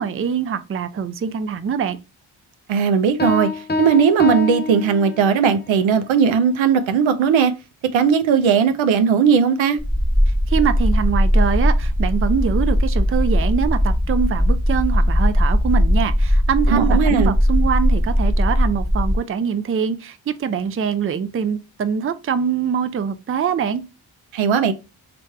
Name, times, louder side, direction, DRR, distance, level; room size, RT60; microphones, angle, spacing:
voice 1, 0.0-2.0 10.5-23.8, right 7 dB, 30° right, 0.5 m, -23 dB
voice 2, 2.7-7.5 7.9-9.8 16.7-17.3 24.3-24.7, right 6 dB, 70° right, 0.6 m, -17 dB
Piano, 3.2-5.6, left 3 dB, 20° left, 0.5 m, -25 dB
sound 1, 9.8-19.2, equal, 5° right, 1.0 m, -18 dB
3.1 x 2.6 x 4.4 m
supercardioid pair, 40°, 48 cm